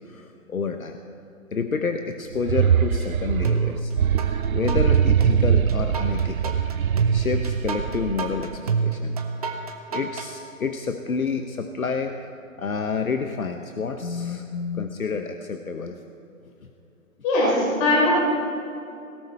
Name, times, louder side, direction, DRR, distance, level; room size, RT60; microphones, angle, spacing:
voice 1, 0.0-1.0 1.5-3.9 4.5-6.6 7.1-9.2 9.9-12.2 12.6-16.0, left 5 dB, 75° left, 6 dB, 1.1 m, -29 dB
sound 1, 2.3-8.7, right 8 dB, 75° right, 0.6 m, -23 dB
sound 2, 3.4-4.3 4.7-10.3, right 5 dB, 25° right, 0.9 m, -26 dB
voice 2, 17.2-18.1, left 2 dB, 20° left, -5 dB, 4.0 m, -20 dB
19.0 x 17.0 x 4.3 m, 2.7 s
figure-of-eight pair, 150°, 42 cm